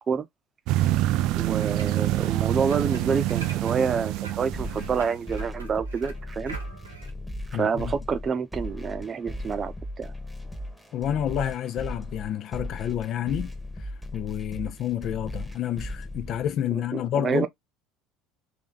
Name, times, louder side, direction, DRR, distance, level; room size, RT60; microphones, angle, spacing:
sound 1, 0.7-5.2, right 15 dB, 55° right, 0.4 m, -26 dB
voice 1, 1.3-6.5 7.5-10.1 17.2-17.5, right 6 dB, 30° right, 0.8 m, -28 dB
sound 2, 1.5-7.1, right 3 dB, 80° right, 1.2 m, -44 dB
sound 3, 4.5-16.5, left 1 dB, ahead, 1.2 m, -37 dB
voice 2, 7.5-8.0 10.9-13.5 14.1-17.5, left 10 dB, 45° left, 0.6 m, -29 dB
3.8 x 3.3 x 3.8 m
figure-of-eight pair, 65°, 0 cm